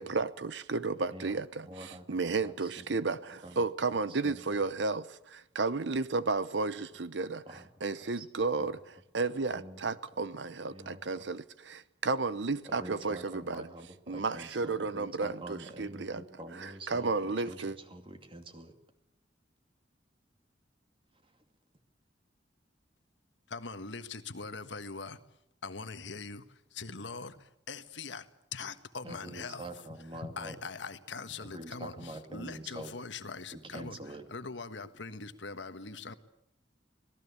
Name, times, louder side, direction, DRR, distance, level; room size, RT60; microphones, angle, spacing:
voice 1, 0.0-13.7 14.1-16.2 16.5-17.8, right 3 dB, 70° right, 0.9 m, -33 dB
voice 2, 1.1-2.0 2.4-3.0 3.4-3.7 4.1-4.6 7.5-7.7 8.0-8.3 8.6-8.7 9.5-9.8 10.7-11.3 12.6-18.7 29.0-30.6 31.4-32.9 33.5-34.3, right 1 dB, 30° right, 2.5 m, -46 dB
voice 3, 23.5-25.2 25.6-29.7 30.1-36.1, left 4 dB, 75° left, 1.5 m, -42 dB
25.5 x 18.5 x 8.4 m
head